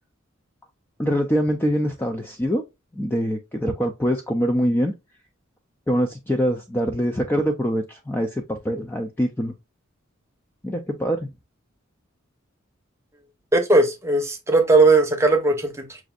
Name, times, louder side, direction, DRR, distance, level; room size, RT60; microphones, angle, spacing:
voice 1, 1.0-2.6 2.9-4.9 5.9-9.5 10.6-11.3, equal, 10° left, 0.4 m, -24 dB
voice 2, 13.5-16.0, right 2 dB, 15° right, 0.8 m, -18 dB
6.0 x 2.5 x 2.4 m
head